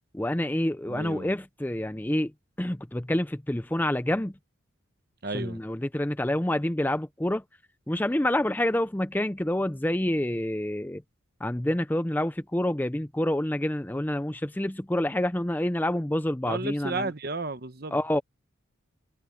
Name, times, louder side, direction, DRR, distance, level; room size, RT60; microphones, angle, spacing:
voice 1, 0.1-2.3 2.6-4.3 5.3-7.4 7.9-11.0 11.4-17.1 17.9-18.2, left 1 dB, 10° left, 0.5 m, -27 dB
voice 2, 0.9-1.3 5.2-5.6 16.5-18.0, right 3 dB, 50° right, 1.0 m, -33 dB
open air
head